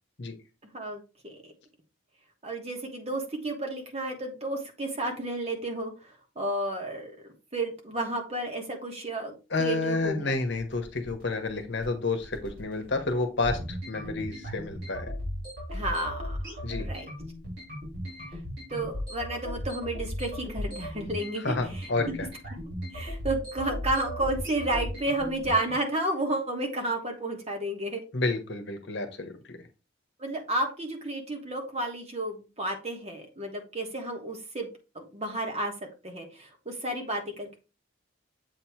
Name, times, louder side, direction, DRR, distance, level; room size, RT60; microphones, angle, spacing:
voice 1, 0.7-1.4 2.4-5.9 6.3-7.1 7.5-10.3 15.7-16.4 16.8-17.0 18.7-21.6 22.0-22.2 22.9-28.0 30.2-34.7 34.9-35.7 36.0-37.6, right 1 dB, 30° right, 2 dB, 1.4 m, -32 dB
voice 2, 9.5-15.1 16.6-16.9 21.4-22.3 28.1-29.6, left 3 dB, 55° left, 6 dB, 1.1 m, -30 dB
sound 1, 10.6-25.8, equal, 60° right, 3.8 m, -36 dB
7.8 x 3.0 x 4.5 m, 0.31 s
head